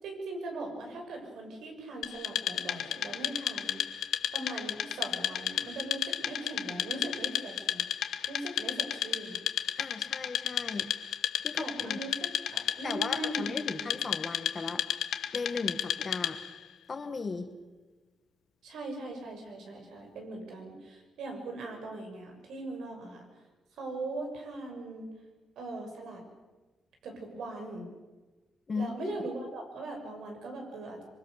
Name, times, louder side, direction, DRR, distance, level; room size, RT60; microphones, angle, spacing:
voice 1, 0.0-3.8 4.3-7.8 8.3-9.4 11.6-14.1 18.6-23.2 23.8-25.1 25.6-26.2 27.0-27.9 28.7-31.0, right 2 dB, 85° right, 3 dB, 6.5 m, -40 dB
Wood, 2.0-16.6, left 10 dB, 80° left, 1.2 m, -33 dB
voice 2, 9.8-10.9 11.4-12.0 12.8-14.8 15.3-16.4 16.9-17.5 28.7-29.2, left 4 dB, 30° left, 7 dB, 1.7 m, -36 dB
25.0 x 24.0 x 6.7 m, 1.2 s
wide cardioid pair, 160°, 0 cm